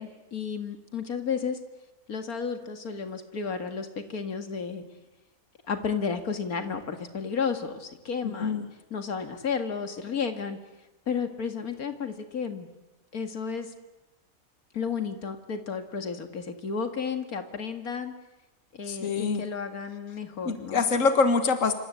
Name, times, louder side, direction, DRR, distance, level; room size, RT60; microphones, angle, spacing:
voice 1, 0.0-1.6 2.1-4.8 5.7-8.7 8.9-10.6 11.1-12.7 13.1-13.7 14.7-18.1 18.7-20.8, left 6 dB, 85° left, 7 dB, 2.5 m, -32 dB
voice 2, 8.2-8.7 18.9-19.4 20.5-21.7, left 4 dB, 65° left, 8 dB, 2.1 m, -25 dB
27.5 x 25.5 x 8.4 m, 1.0 s
omnidirectional pair, 1.5 m